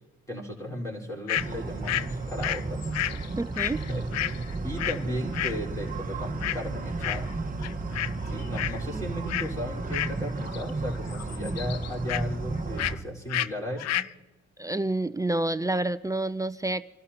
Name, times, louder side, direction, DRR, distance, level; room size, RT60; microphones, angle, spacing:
voice 1, 0.3-2.8 3.9-4.0 4.6-7.3 8.2-14.0, equal, 10° left, -2 dB, 4.2 m, -35 dB
sound 1, 1.3-1.5 1.8-5.0 5.3-5.6 6.4-6.7 7.0-7.3 7.6-8.1 8.4-8.8 9.3-9.5 9.9-10.7 10.9-12.2 12.8-13.0 13.3-13.5 13.8-14.1, left 13 dB, 60° left, 0.4 m, -31 dB
sound 2, 1.4-12.9, right 3 dB, 30° right, 1.3 m, -33 dB
voice 2, 3.4-3.8 8.9-9.1 14.6-16.8, right 2 dB, 10° right, 12 dB, 0.4 m, -28 dB
26.0 x 12.5 x 2.9 m, 1.1 s
cardioid pair, 90°, 30 cm